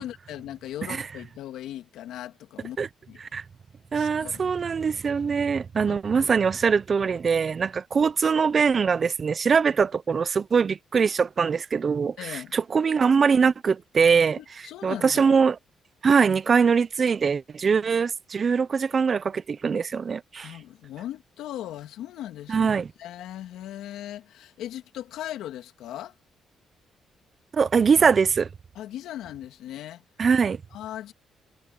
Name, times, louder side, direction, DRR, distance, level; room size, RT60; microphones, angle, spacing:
voice 1, 0.0-2.8 3.1-3.2 3.9-4.9 5.9-6.3 12.2-12.6 14.4-15.4 20.4-22.7 23.0-26.1 28.7-30.0 30.7-31.1, left 12 dB, 85° left, 2.8 m, -38 dB
voice 2, 3.9-15.5 16.0-20.6 22.5-22.9 27.5-28.5 30.2-30.6, right 5 dB, 40° right, 0.7 m, -22 dB
cardioid pair, 90°, 0 cm